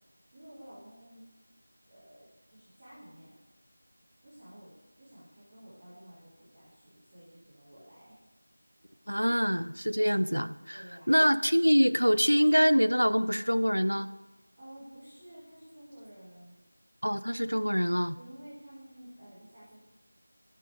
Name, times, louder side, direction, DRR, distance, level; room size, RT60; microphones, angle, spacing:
voice 1, 0.3-1.2 1.9-3.3 4.2-8.2 8.8-8.9 10.7-11.3 14.6-16.6 18.1-19.8, right 1 dB, 20° right, -11 dB, 1.4 m, -52 dB
voice 2, 9.1-14.1 17.0-18.2, equal, 90° right, 14 dB, 0.3 m, -25 dB
8.9 x 5.2 x 3.4 m, 1.2 s
figure-of-eight pair, 170°, 0 cm